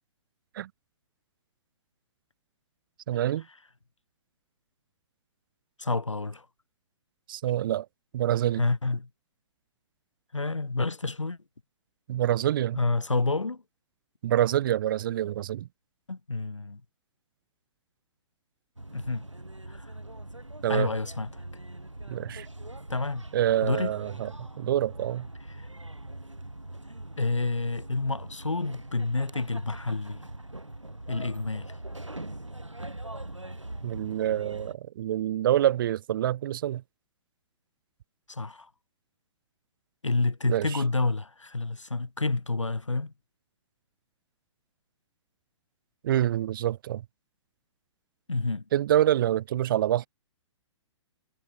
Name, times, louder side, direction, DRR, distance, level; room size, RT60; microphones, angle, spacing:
voice 1, 3.1-3.4 7.3-7.8 8.1-8.6 12.1-12.8 14.2-15.7 20.6-20.9 22.1-22.5 23.3-25.3 33.8-36.8 40.5-40.8 46.0-47.0 48.7-50.1, right 12 dB, 45° right, 1.7 m, -26 dB
voice 2, 5.8-6.5 8.6-9.1 10.3-11.4 12.7-13.6 16.1-16.8 18.9-19.3 19.7-19.9 20.7-21.4 22.9-23.2 23.6-23.9 25.6-25.7 27.2-30.2 31.1-31.7 38.3-38.7 40.0-43.1 48.3-48.6, left 3 dB, 85° left, 1.1 m, -29 dB
sound 1, 18.8-34.7, right 1 dB, 90° right, 1.8 m, -42 dB
figure-of-eight pair, 120°, 15 cm